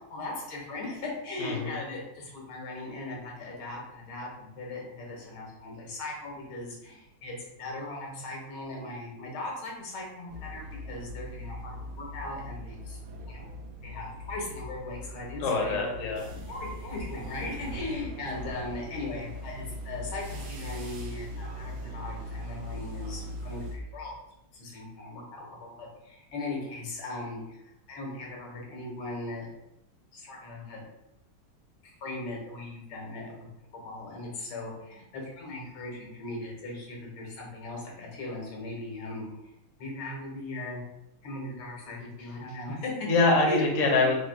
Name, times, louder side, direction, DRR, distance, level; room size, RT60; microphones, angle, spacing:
voice 1, 0.1-13.0 13.3-13.5 13.8-15.9 16.5-24.1 24.6-27.6 27.9-29.5 30.1-30.8 31.8-33.4 33.7-39.3 39.8-40.8 41.2-42.9 43.4-43.6 43.9-44.1, left 2 dB, 80° left, -2 dB, 2.2 m, -38 dB
voice 2, 1.4-1.7 15.4-16.2 43.1-44.2, left 3 dB, 50° left, 0 dB, 1.0 m, -24 dB
sound 1, 10.3-23.8, equal, 75° right, 1.5 m, -40 dB
4.7 x 2.4 x 4.6 m, 0.85 s
omnidirectional pair, 2.3 m